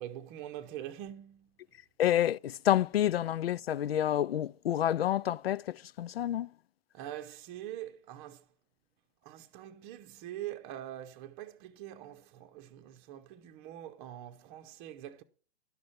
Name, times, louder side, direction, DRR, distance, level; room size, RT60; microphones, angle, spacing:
voice 1, 0.0-1.6 6.9-8.4 9.2-15.2, right 12 dB, 30° right, 0.8 m, -44 dB
voice 2, 2.0-6.5, left 11 dB, 65° left, 0.5 m, -29 dB
11.5 x 6.3 x 7.2 m
figure-of-eight pair, 115°, 32 cm